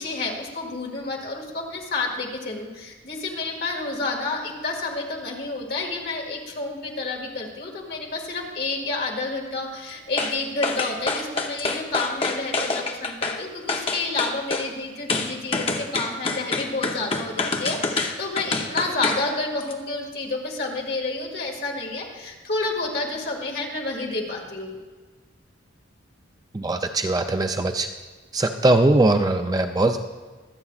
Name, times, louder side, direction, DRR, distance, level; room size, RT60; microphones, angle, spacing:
voice 1, 0.0-24.7, left 3 dB, 50° left, 0 dB, 2.1 m, -29 dB
sound 1, 10.2-10.4 10.6-13.4 13.7-14.7 15.1-19.2 19.6-19.7, left 3 dB, 30° left, 0.8 m, -26 dB
voice 2, 26.5-27.9 28.3-30.0, right 2 dB, 20° right, 6 dB, 0.4 m, -20 dB
24.0 x 8.3 x 2.4 m, 1.4 s
head